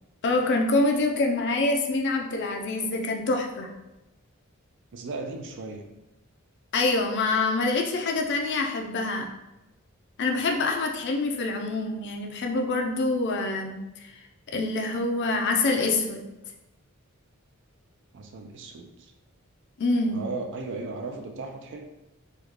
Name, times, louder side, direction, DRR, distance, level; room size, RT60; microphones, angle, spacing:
voice 1, 0.2-3.7 6.7-9.3 10.2-13.8 14.5-16.2 19.8-20.2, left 2 dB, 55° left, 2 dB, 0.5 m, -25 dB
voice 2, 4.9-5.9 18.1-19.1 20.1-21.8, right 3 dB, 60° right, 5 dB, 0.4 m, -36 dB
3.1 x 2.2 x 3.5 m, 0.98 s
head